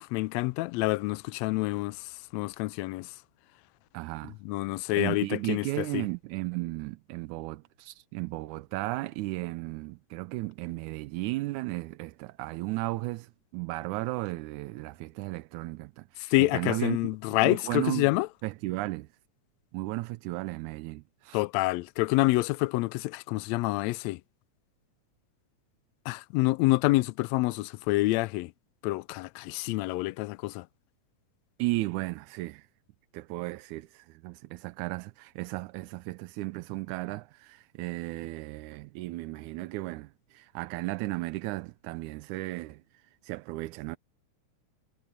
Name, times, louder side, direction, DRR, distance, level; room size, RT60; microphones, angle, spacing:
voice 1, 0.0-3.1 4.4-6.1 16.2-18.3 21.3-24.2 26.1-28.5 28.8-30.7, left 20 dB, 80° left, 1.6 m, -27 dB
voice 2, 3.9-4.4 4.7-17.0 17.4-18.1 18.4-19.1 19.7-21.4 31.6-32.7 33.1-44.0, right 20 dB, 80° right, 2.0 m, -35 dB
omnidirectional pair, 3.5 m